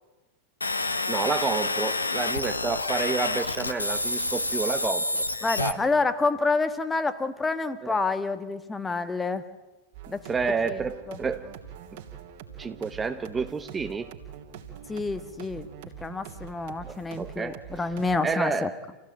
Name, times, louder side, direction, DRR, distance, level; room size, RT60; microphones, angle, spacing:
sound 1, 0.6-5.7, left 2 dB, 80° left, 1.1 m, -28 dB
voice 1, 1.1-5.0 5.6-5.8 7.8-8.0 10.3-11.5 12.6-14.1 16.9-17.6 18.2-18.8, right 5 dB, 15° right, 9 dB, 0.9 m, -29 dB
voice 2, 5.4-9.4 10.1-10.2 10.7-10.8 11.1-11.2 14.9-15.7 16.0-18.7, left 3 dB, 10° left, 11 dB, 1.4 m, -28 dB
sound 2, 9.9-18.2, right 8 dB, 50° right, 3.0 m, -44 dB
28.0 x 16.5 x 8.8 m, 1.2 s
figure-of-eight pair, 90°, 0 cm